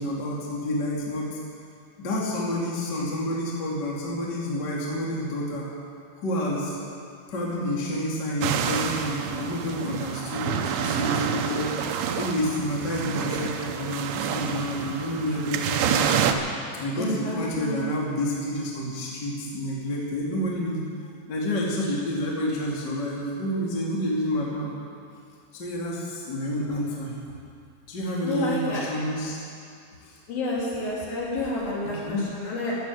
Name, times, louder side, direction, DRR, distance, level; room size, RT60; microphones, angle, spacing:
voice 1, 0.0-1.4 2.0-5.7 6.2-6.8 7.3-11.7 12.2-16.3 16.8-20.8 21.3-24.7 25.5-27.1 27.9-29.4 30.0-30.2 31.8-32.2, equal, 30° left, -4 dB, 2.2 m, -29 dB
sound 1, 8.4-16.3, right 8 dB, 80° right, 3.0 m, -28 dB
voice 2, 17.0-17.8 28.2-28.9 30.3-32.8, left 2 dB, 55° left, -6 dB, 4.8 m, -29 dB
15.5 x 11.5 x 8.0 m, 2.4 s
omnidirectional pair, 5.3 m